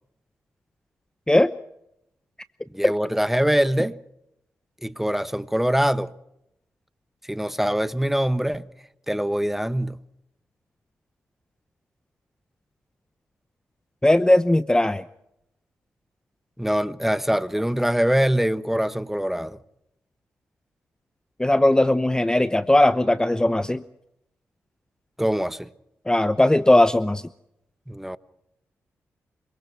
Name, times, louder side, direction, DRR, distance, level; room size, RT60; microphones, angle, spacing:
voice 1, 2.7-4.0 4.8-6.1 7.3-8.6 9.1-10.0 16.6-19.6 25.2-25.7 27.9-28.2, equal, 5° right, 1.2 m, -23 dB
voice 2, 14.0-15.0 21.4-23.8 26.1-27.2, left 1 dB, 10° left, 0.8 m, -18 dB
26.5 x 24.0 x 4.6 m
supercardioid pair, 45°, 6 cm